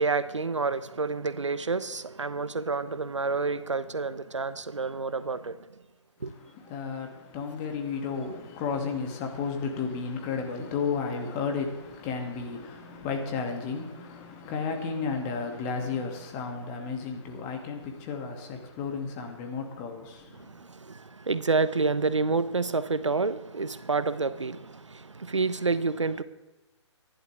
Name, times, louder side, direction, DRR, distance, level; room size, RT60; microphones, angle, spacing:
voice 1, 0.0-5.6 6.2-6.3 20.4-26.2, right 4 dB, 80° right, 0.9 m, -29 dB
voice 2, 6.2-20.6, left 5 dB, 25° left, 2.4 m, -33 dB
25.5 x 11.5 x 3.5 m
figure-of-eight pair, 135°, 15 cm